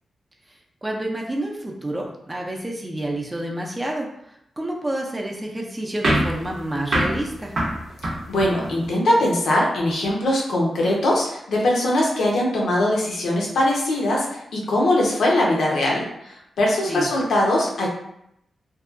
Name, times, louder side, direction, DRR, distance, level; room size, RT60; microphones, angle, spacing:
voice 1, 0.8-7.5 16.9-17.1, right 1 dB, 20° right, -1 dB, 0.5 m, -29 dB
sound 1, 6.0-8.9, right 1 dB, 65° right, 0.6 m, -25 dB
voice 2, 8.3-17.9, left 1 dB, 90° left, -2 dB, 0.7 m, -21 dB
2.6 x 2.2 x 2.5 m, 0.78 s
wide cardioid pair, 105°, 0 cm